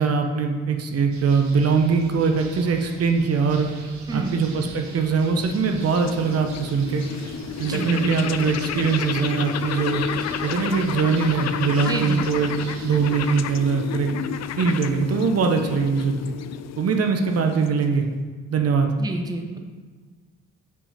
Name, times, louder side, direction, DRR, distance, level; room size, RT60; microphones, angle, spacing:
voice 1, 0.0-3.7 4.1-7.1 7.6-10.0 10.4-12.5 12.8-14.1 14.6-16.2 16.8-18.1 18.5-18.9, right 5 dB, 55° right, 4 dB, 0.9 m, -22 dB
sound 1, 1.1-13.4, right 3 dB, 70° right, 1.2 m, -42 dB
voice 2, 4.1-4.4 7.6-7.9 11.8-12.2 19.0-19.6, right 2 dB, 15° right, 4 dB, 0.7 m, -29 dB
sound 2, 4.7-18.1, left 9 dB, 60° left, 0.5 m, -31 dB
6.8 x 5.9 x 4.2 m, 1.4 s
cardioid pair, 90°, 30 cm